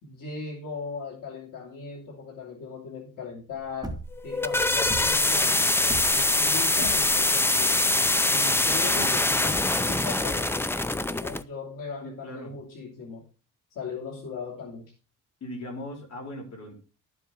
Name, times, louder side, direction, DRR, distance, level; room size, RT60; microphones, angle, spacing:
voice 1, 0.0-4.0 4.2-7.9 8.3-13.2 13.7-14.9, left 4 dB, 75° left, -1 dB, 2.9 m, -38 dB
sound 1, 3.6-9.5, right 2 dB, 10° right, 1.2 m, -39 dB
sound 2, 4.1-11.4, left 2 dB, 5° left, 0.4 m, -24 dB
voice 2, 12.0-12.5 15.4-16.8, left 1 dB, 50° left, -1 dB, 4.5 m, -39 dB
12.5 x 7.7 x 3.8 m, 0.32 s
cardioid pair, 145°, 32 cm